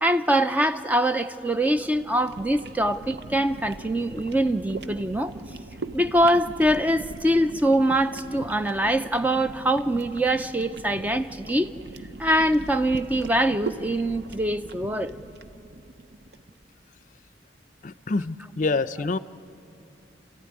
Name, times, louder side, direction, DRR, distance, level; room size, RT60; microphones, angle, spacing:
voice 1, 0.0-5.3 5.9-11.7 12.2-15.2, right 1 dB, 10° right, 9 dB, 0.5 m, -23 dB
sound 1, 1.3-16.5, right 3 dB, 65° right, 0.7 m, -40 dB
voice 2, 17.8-19.2, left 3 dB, 45° left, 15 dB, 0.5 m, -26 dB
29.5 x 14.5 x 9.7 m, 2.8 s
head